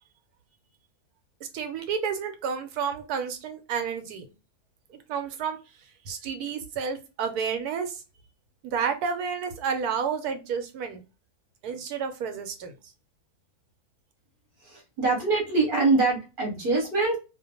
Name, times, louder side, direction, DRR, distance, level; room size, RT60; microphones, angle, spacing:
voice 1, 1.5-4.3 5.1-5.6 6.1-8.0 8.6-11.0 11.6-12.7, right 6 dB, 85° right, 7 dB, 1.1 m, -30 dB
voice 2, 14.6-17.2, right 3 dB, 45° right, 0 dB, 0.8 m, -24 dB
2.5 x 2.1 x 2.7 m, 0.29 s
omnidirectional pair, 1.6 m